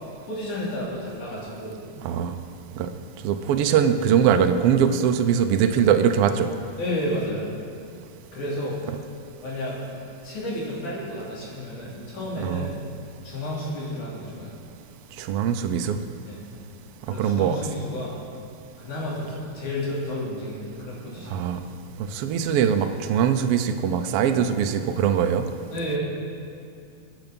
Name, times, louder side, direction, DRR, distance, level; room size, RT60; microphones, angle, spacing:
voice 1, 0.2-1.7 6.8-7.5 8.3-8.8 9.4-9.8 10.2-12.8 13.2-14.5 16.2-16.4 17.1-18.1 18.8-21.4 25.7-26.0, left 1 dB, 70° left, -6 dB, 4.6 m, -31 dB
voice 2, 3.2-6.5 12.4-12.7 15.2-16.0 17.2-17.6 21.3-21.6 22.1-25.4, right 8 dB, 85° right, 7 dB, 1.3 m, -21 dB
22.5 x 8.2 x 5.3 m, 2.4 s
omnidirectional pair, 3.6 m